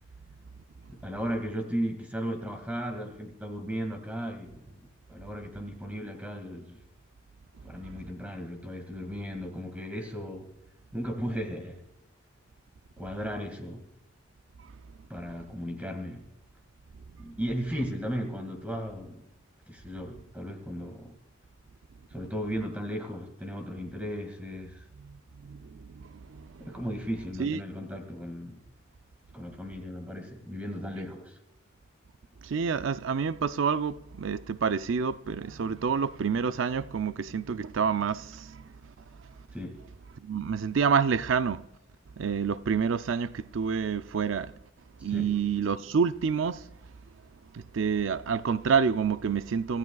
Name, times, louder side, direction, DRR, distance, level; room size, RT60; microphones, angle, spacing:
voice 1, 0.9-4.8 5.1-6.8 7.6-10.5 10.9-11.8 13.0-13.8 15.1-16.3 17.2-19.3 19.7-21.1 22.1-24.8 26.6-28.6 29.3-31.4 39.5-39.9 45.1-45.3, equal, 5° right, 2.0 m, -36 dB
voice 2, 25.0-26.7 27.4-27.6 32.4-38.7 40.2-41.6 42.2-44.5 45.0-46.6 47.5-49.8, right 6 dB, 75° right, 0.5 m, -28 dB
26.0 x 15.0 x 2.3 m
head